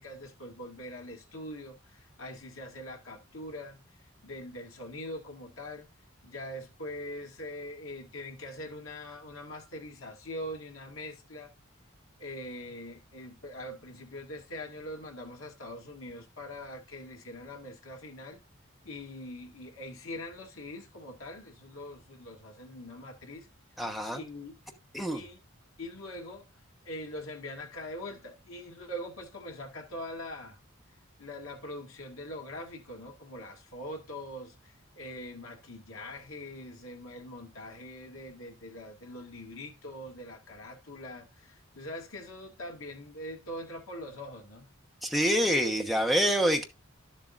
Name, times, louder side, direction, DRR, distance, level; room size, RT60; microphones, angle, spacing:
voice 1, 0.0-3.8 4.2-5.9 6.2-11.5 12.2-18.4 18.8-23.5 24.1-24.5 25.1-25.4 25.8-26.5 26.8-30.6 31.2-44.6, left 1 dB, 75° left, 1.9 m, -43 dB
voice 2, 23.8-24.2 24.9-25.2 45.0-46.6, equal, ahead, 1.0 m, -26 dB
11.5 x 7.3 x 2.5 m
head